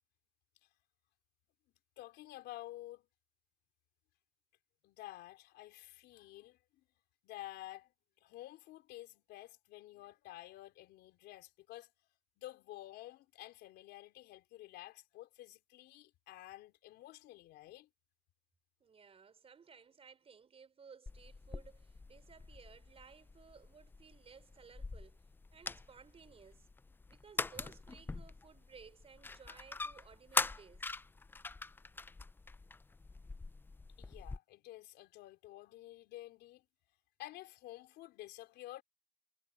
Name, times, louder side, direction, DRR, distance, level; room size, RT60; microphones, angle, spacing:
voice 1, 2.0-3.1 4.8-6.8 7.2-7.9 8.2-11.9 12.4-17.9 34.0-36.7 37.2-38.8, left 16 dB, 85° left, 3.9 m, -51 dB
voice 2, 18.8-25.2 25.5-26.7 27.1-30.9, right 6 dB, 35° right, 5.1 m, -58 dB
sound 1, 21.1-34.4, left 3 dB, 10° left, 0.4 m, -43 dB
cardioid pair, 110°, 17 cm